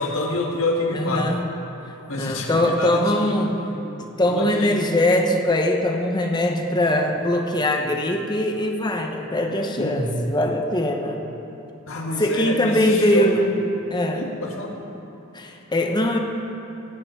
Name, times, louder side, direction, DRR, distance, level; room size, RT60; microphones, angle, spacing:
voice 1, 0.0-1.3 2.1-3.6 4.3-4.9 9.8-10.2 11.9-13.4 14.1-14.8, left 2 dB, 75° left, 0 dB, 1.8 m, -27 dB
voice 2, 0.9-1.4 2.2-3.6 4.0-11.3 12.2-13.5 13.9-14.2 15.3-16.2, left 1 dB, 20° left, 3 dB, 1.0 m, -22 dB
17.0 x 5.9 x 8.5 m, 2.9 s
head